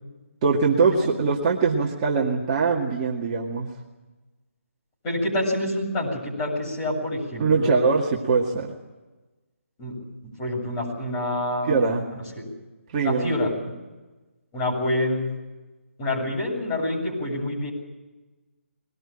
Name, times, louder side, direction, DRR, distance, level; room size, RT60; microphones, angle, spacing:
voice 1, 0.4-3.7 7.4-8.7 11.7-12.0 12.9-13.4, right 4 dB, 25° right, -3 dB, 2.1 m, -22 dB
voice 2, 5.0-7.9 9.8-9.9 10.2-12.4 13.0-13.7 14.5-15.3 16.0-17.7, left 1 dB, 20° left, -3 dB, 7.7 m, -27 dB
22.0 x 19.0 x 8.9 m, 1.2 s
figure-of-eight pair, 160°, 7 cm